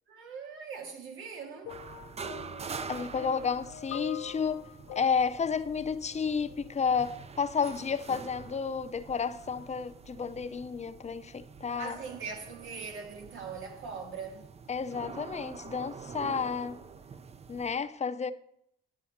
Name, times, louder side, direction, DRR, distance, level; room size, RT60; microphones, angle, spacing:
voice 1, 0.1-1.8 11.8-14.5, right 5 dB, 85° right, 2.1 m, -41 dB
sound 1, 1.6-6.8 7.7-7.8, left 12 dB, 85° left, 0.6 m, -45 dB
sound 2, 1.7-17.8, right 5 dB, 30° right, 0.5 m, -46 dB
voice 2, 2.9-4.6 4.9-12.0 14.7-16.8 17.5-18.3, left 6 dB, 35° left, 0.6 m, -31 dB
11.0 x 6.2 x 5.7 m
cardioid pair, 90°, 20 cm